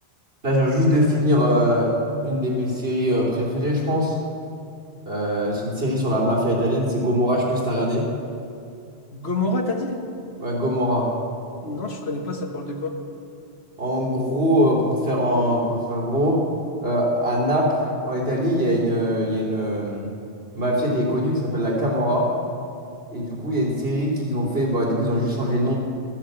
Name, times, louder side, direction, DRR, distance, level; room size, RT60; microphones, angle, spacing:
voice 1, 0.4-1.9 2.2-4.1 5.1-8.1 10.4-11.1 13.8-16.4 16.8-17.7 18.0-20.1 20.5-22.3 23.1-25.7, equal, 65° right, -4 dB, 3.5 m, -22 dB
voice 2, 9.1-10.0 11.6-12.9, left 2 dB, 70° left, 3 dB, 1.7 m, -27 dB
14.5 x 10.0 x 8.0 m, 2.5 s
omnidirectional pair, 1.1 m